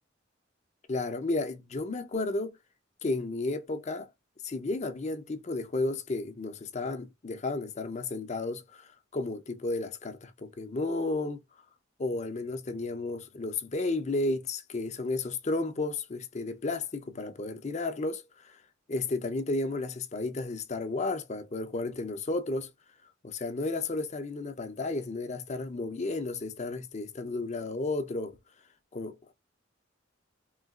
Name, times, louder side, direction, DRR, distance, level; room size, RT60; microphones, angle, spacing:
voice 1, 0.9-2.6 3.0-4.1 4.4-11.4 12.0-18.6 18.9-22.7 23.2-28.4 28.9-29.3, left 2 dB, 35° left, 0.6 m, -33 dB
3.8 x 2.4 x 2.3 m
head